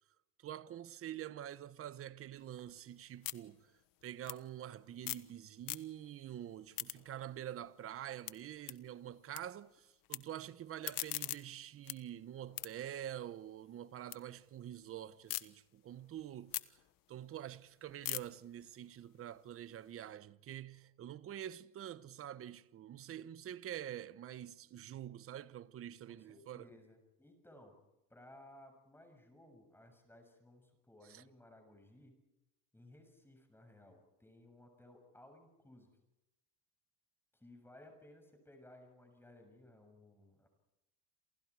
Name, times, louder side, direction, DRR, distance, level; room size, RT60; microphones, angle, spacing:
voice 1, 0.4-3.7 4.0-16.8 17.1-26.7 31.1-31.2, right 11 dB, 30° right, 1.1 m, -46 dB
sound 1, 2.4-5.3 5.6-6.2 6.5-9.4 9.7-10.2 10.6-14.2 14.6-15.4 15.9-20.0, left 17 dB, 50° left, 1.4 m, -45 dB
voice 2, 26.1-27.8 28.1-32.2 32.7-35.9 37.3-40.5, left 1 dB, 5° left, 7.0 m, -59 dB
29.0 x 28.5 x 4.8 m
supercardioid pair, 135°, 42 cm